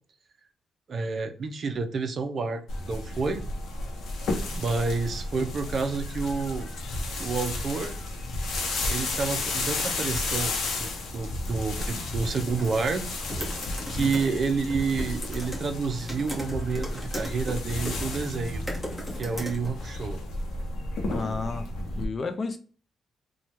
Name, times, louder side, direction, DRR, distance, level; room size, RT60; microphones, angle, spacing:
voice 1, 0.9-2.6 2.9-3.4 4.5-6.7 7.2-8.0 8.9-10.5 10.8-13.0 13.9-18.6 19.2-20.2, right 4 dB, 45° right, 0.4 m, -29 dB
sound 1, 2.7-22.1, left 2 dB, 70° left, 0.7 m, -32 dB
sound 2, 12.2-20.1, equal, 5° left, 1.2 m, -39 dB
voice 2, 21.1-21.7 21.9-22.6, left 4 dB, 35° left, 0.4 m, -32 dB
3.1 x 2.2 x 2.8 m
cardioid pair, 110°, 0 cm